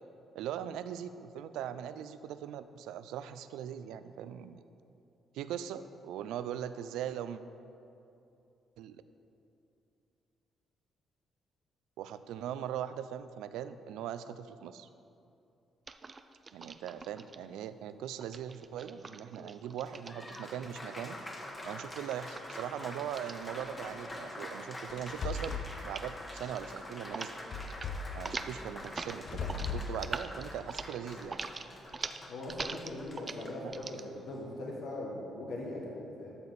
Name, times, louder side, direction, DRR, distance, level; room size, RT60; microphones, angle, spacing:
voice 1, 0.3-4.6 5.3-7.4 8.8-9.0 12.0-14.9 16.5-21.2 21.6-27.4 28.1-31.4 33.6-33.7, right 9 dB, 90° right, 12 dB, 0.4 m, -40 dB
sound 1, 15.9-17.4 18.2-20.7 21.6-24.2 24.4-24.8 25.2-25.6 25.9-26.1 26.4-27.3 27.6-27.9 28.2-34.0, right 4 dB, 35° right, 0.5 m, -43 dB
Applause, 19.7-34.4, left 1 dB, 25° left, 1.4 m, -46 dB
sound 2, 24.9-25.7 27.5-28.2 29.1-29.9, left 5 dB, 55° left, 0.6 m, -37 dB
voice 2, 32.3-36.3, left 1 dB, 75° left, -2 dB, 1.6 m, -40 dB
12.5 x 6.9 x 4.1 m, 2.7 s
cardioid pair, 90°, 0 cm